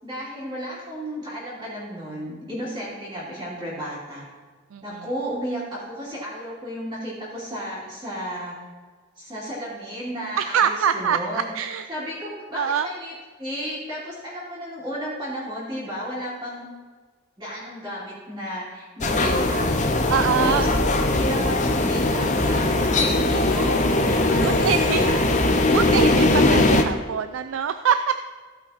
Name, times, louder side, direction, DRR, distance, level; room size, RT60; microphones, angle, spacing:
voice 1, 0.0-4.3 4.8-8.6 9.2-11.6 11.9-13.1 13.4-16.7 17.4-25.3, equal, 20° right, -11 dB, 2.9 m, -33 dB
voice 2, 10.4-11.9 12.5-12.9 20.1-20.7 24.4-25.0 25.7-28.1, right 7 dB, 75° right, 10 dB, 0.4 m, -24 dB
sound 1, 19.0-26.8, left 2 dB, 35° left, 0.9 m, -20 dB
16.0 x 5.8 x 4.3 m, 1.5 s
head